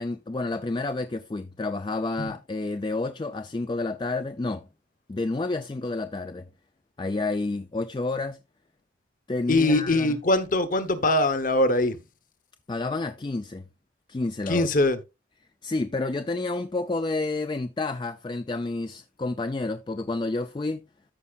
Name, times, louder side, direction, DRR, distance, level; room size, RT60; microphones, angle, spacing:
voice 1, 0.0-4.7 5.1-6.5 7.0-8.4 9.3-10.2 12.7-13.6 14.1-14.7 15.6-20.9, left 2 dB, 25° left, 0.3 m, -30 dB
voice 2, 9.5-12.0 14.5-15.0, left 2 dB, 45° left, 1.0 m, -22 dB
13.5 x 5.4 x 2.4 m
head